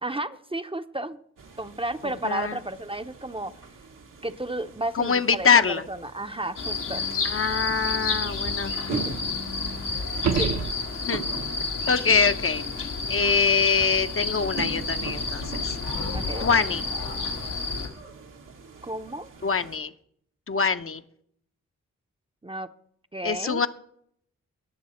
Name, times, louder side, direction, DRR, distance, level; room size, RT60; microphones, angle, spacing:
voice 1, 0.0-1.2 1.6-3.5 4.2-7.0 8.9-9.1 10.4-10.6 16.1-16.5 18.8-19.3 22.4-22.7 23.1-23.6, right 1 dB, 15° right, 9 dB, 0.6 m, -32 dB
sound 1, 1.4-19.8, right 5 dB, 90° right, 1.7 m, -43 dB
voice 2, 4.9-5.8 7.2-9.0 11.0-11.2 11.9-12.6 13.1-15.8 16.4-16.8 19.4-19.9 20.5-21.0 23.2-23.7, left 5 dB, 45° left, 9 dB, 0.7 m, -24 dB
sound 2, 6.6-17.9, left 4 dB, 90° left, 2.0 m, -30 dB
sound 3, 10.1-11.4 16.2-16.3, right 6 dB, 65° right, 0.9 m, -28 dB
19.5 x 6.7 x 4.2 m, 0.68 s
cardioid pair, 60°, 31 cm